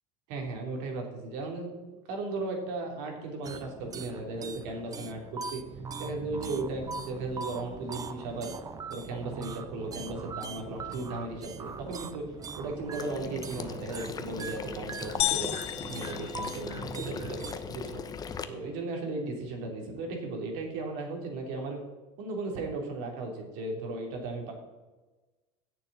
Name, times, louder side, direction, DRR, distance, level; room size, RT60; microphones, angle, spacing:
voice 1, 0.3-5.6 6.0-8.5 8.9-15.5 15.9-18.0 18.5-21.8 22.2-24.5, right 2 dB, 70° right, 1 dB, 3.3 m, -36 dB
sound 1, 3.4-17.5, right 4 dB, 25° right, 0.8 m, -41 dB
Water / Liquid, 13.0-18.4, left 6 dB, 25° left, 0.9 m, -40 dB
sound 2, 15.2-17.2, left 13 dB, 45° left, 0.5 m, -33 dB
16.0 x 6.9 x 4.2 m, 1.2 s
supercardioid pair, 105°, 14 cm